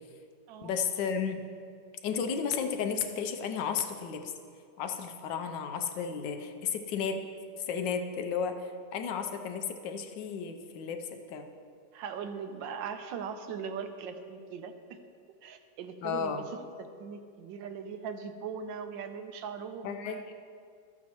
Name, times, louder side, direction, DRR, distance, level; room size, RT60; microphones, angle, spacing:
voice 1, 0.6-1.4 2.0-4.3 4.8-7.2 7.7-11.5 16.0-16.4 19.8-20.3, left 6 dB, 80° left, 6 dB, 1.3 m, -33 dB
voice 2, 11.9-15.0 15.4-20.3, right 6 dB, 85° right, 8 dB, 1.4 m, -40 dB
12.5 x 8.4 x 3.0 m, 2.2 s
omnidirectional pair, 2.0 m